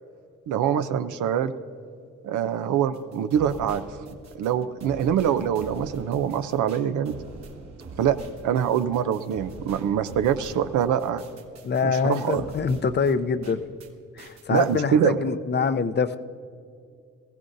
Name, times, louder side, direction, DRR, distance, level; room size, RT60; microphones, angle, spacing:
voice 1, 0.5-1.5 2.2-3.9 4.3-7.2 8.0-8.2 8.4-11.2 11.8-12.5 14.5-15.2, right 9 dB, 75° right, 10 dB, 0.7 m, -24 dB
sound 1, 2.9-13.9 14.2-14.8, right 3 dB, 60° right, 1.8 m, -45 dB
voice 2, 11.6-13.6 14.2-16.2, left 5 dB, 35° left, 12 dB, 0.6 m, -25 dB
20.0 x 15.0 x 2.6 m, 2.3 s
cardioid pair, 90°, 30 cm